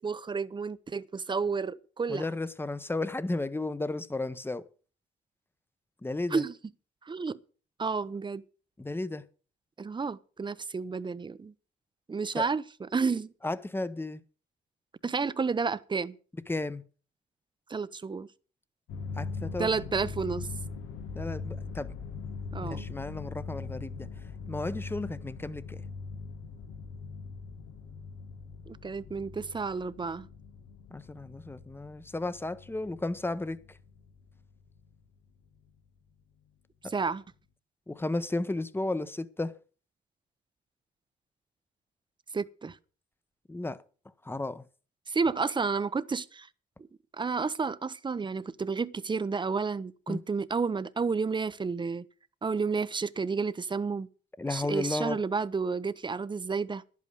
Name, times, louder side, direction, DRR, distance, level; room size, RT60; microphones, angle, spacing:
voice 1, 0.0-2.3 6.3-6.5 7.1-7.4 7.8-8.4 9.8-11.5 12.1-13.3 15.0-16.1 17.7-18.3 19.6-20.5 22.5-22.9 28.7-30.3 36.9-37.2 42.3-42.8 45.1-46.5 47.2-52.1 52.4-54.1 54.5-56.8, right 4 dB, 25° right, 0.7 m, -31 dB
voice 2, 2.1-4.6 6.0-6.4 8.8-9.2 12.4-12.5 13.4-14.2 16.5-16.8 19.2-19.7 21.1-21.9 22.6-24.1 24.5-25.8 30.9-33.8 36.8-36.9 37.9-39.6 43.5-43.8 44.2-44.6 50.1-50.2 54.4-55.2, left 2 dB, 10° left, 0.9 m, -33 dB
sound 1, 18.9-34.9, left 4 dB, 90° left, 1.7 m, -41 dB
11.0 x 8.5 x 6.7 m
cardioid pair, 90°, 20 cm